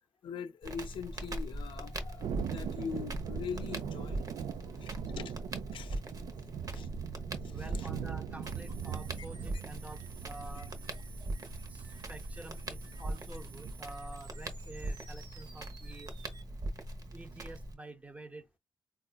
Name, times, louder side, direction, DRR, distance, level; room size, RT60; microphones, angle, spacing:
voice 1, 0.2-4.2 4.8-5.4 5.7-6.0 6.7-6.9 7.4-7.9 10.6-10.7, left 7 dB, 75° left, 0.4 m, -42 dB
Crackle, 0.6-17.7, right 1 dB, 45° right, 0.8 m, -41 dB
Thunder, 2.2-13.7, right 9 dB, 85° right, 0.4 m, -42 dB
voice 2, 4.7-5.1 7.5-10.7 11.7-16.1 17.1-18.5, right 2 dB, 15° right, 0.5 m, -49 dB
sound 1, 8.4-16.4, right 5 dB, 70° right, 1.1 m, -55 dB
3.9 x 2.3 x 2.3 m
cardioid pair, 90°, 9 cm